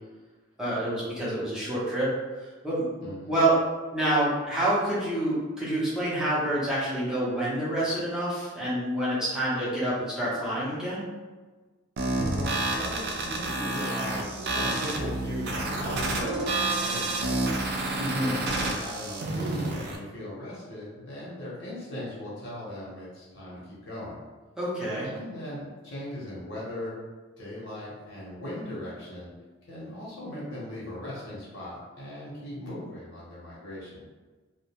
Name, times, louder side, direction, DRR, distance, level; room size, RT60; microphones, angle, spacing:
voice 1, 0.6-2.1 2.4-3.6 3.9-11.0 18.0-18.4 24.6-25.1, right 1 dB, 5° right, -9 dB, 0.6 m, -27 dB
voice 2, 3.0-3.4 12.1-17.6 18.2-24.2 25.0-26.9 27.4-29.3 29.7-34.0, left 1 dB, 65° left, -7 dB, 0.9 m, -38 dB
sound 1, 12.0-20.0, right 2 dB, 55° right, 0.3 m, -29 dB
2.3 x 2.1 x 2.8 m, 1.3 s
head